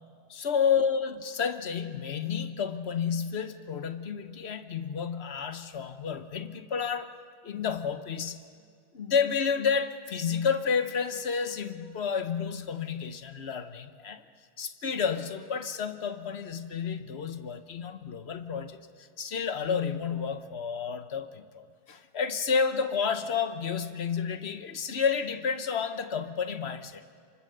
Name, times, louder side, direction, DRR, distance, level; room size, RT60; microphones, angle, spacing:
voice 1, 0.3-7.2 7.4-8.4 8.9-14.2 14.6-27.2, left 6 dB, 70° left, 9 dB, 1.3 m, -30 dB
29.0 x 24.5 x 6.7 m, 2.1 s
omnidirectional pair, 1.1 m